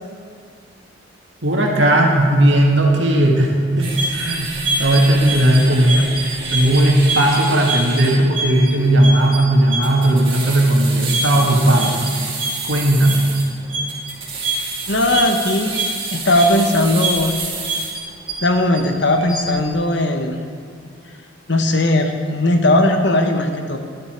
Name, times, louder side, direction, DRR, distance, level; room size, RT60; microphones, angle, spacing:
voice 1, 1.4-6.1 6.5-12.0 12.6-13.3, right 1 dB, 70° right, 0 dB, 1.9 m, -16 dB
sound 1, 3.8-18.8 19.2-19.6, right 3 dB, 25° right, 2.3 m, -26 dB
voice 2, 14.9-15.8 16.1-17.3 18.4-20.4 21.5-23.8, left 1 dB, 60° left, 5 dB, 1.1 m, -17 dB
12.5 x 11.5 x 4.5 m, 2.3 s
head